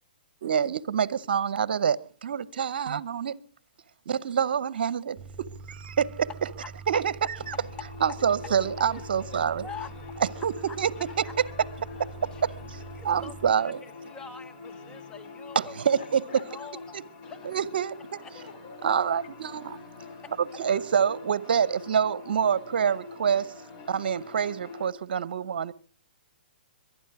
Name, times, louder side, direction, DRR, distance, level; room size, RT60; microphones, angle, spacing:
voice 1, 0.4-3.4 4.1-6.3 6.9-7.5 8.0-9.6 10.2-10.9 12.2-13.8 15.5-16.2 16.9-17.0 17.4-18.0 18.8-19.8 20.4-23.6 23.9-25.7, right 7 dB, 70° right, 0.8 m, -27 dB
sound 1, 5.2-13.5, right 3 dB, 15° right, 2.8 m, -44 dB
sound 2, 7.4-24.9, left 4 dB, 35° left, 3.6 m, -45 dB
voice 2, 8.4-9.7 10.3-10.4 11.1-11.2 11.4-12.2 16.0-16.4 18.3-19.3, left 6 dB, 65° left, 4.8 m, -48 dB
voice 3, 12.9-15.7 16.5-17.0 17.3-17.5 18.2-18.3 20.2-20.3, left 5 dB, 15° left, 1.2 m, -44 dB
22.5 x 12.0 x 4.8 m
hypercardioid pair, 135°, 5 cm